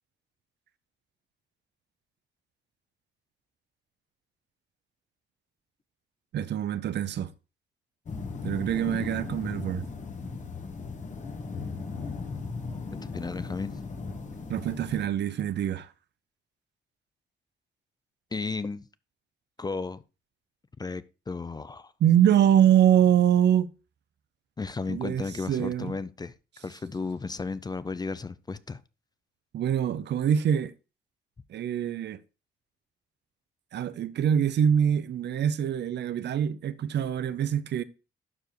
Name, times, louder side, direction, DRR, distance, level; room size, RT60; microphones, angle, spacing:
voice 1, 6.3-7.3 8.4-9.8 14.5-15.9 22.0-23.7 24.9-26.0 29.5-30.7 31.5-32.2 33.7-37.8, right 10 dB, 60° right, 0.6 m, -24 dB
sound 1, 8.1-15.1, left 4 dB, 40° left, 1.5 m, -37 dB
voice 2, 13.1-13.8 18.3-18.9 19.6-20.0 20.8-21.9 24.6-28.8, left 4 dB, 20° left, 0.5 m, -34 dB
12.0 x 4.7 x 3.0 m
cardioid pair, 90°, 20 cm